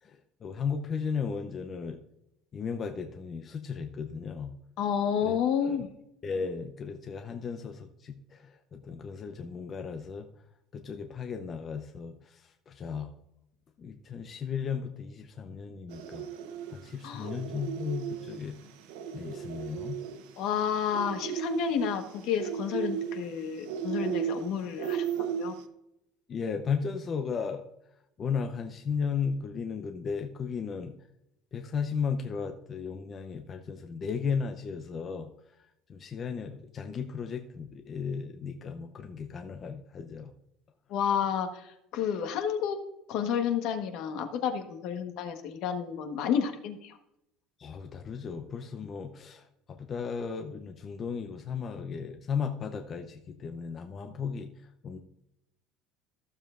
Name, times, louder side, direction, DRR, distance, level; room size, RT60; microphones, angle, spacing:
voice 1, 0.0-2.0 2.5-4.5 5.2-5.8 6.2-10.3 10.7-13.1 13.8-16.3 16.7-18.6 19.1-20.0 26.3-27.6 28.2-30.9 31.5-40.3 47.6-55.0, left 6 dB, 30° left, 5 dB, 0.6 m, -35 dB
voice 2, 4.8-5.9 17.0-17.3 20.4-25.1 25.3-25.5 40.9-42.8 43.1-47.0, left 8 dB, 60° left, 6 dB, 1.3 m, -30 dB
sound 1, 15.9-25.6, right 8 dB, 85° right, 1.0 m, -35 dB
14.5 x 7.3 x 2.5 m, 0.82 s
cardioid pair, 160°, 0 cm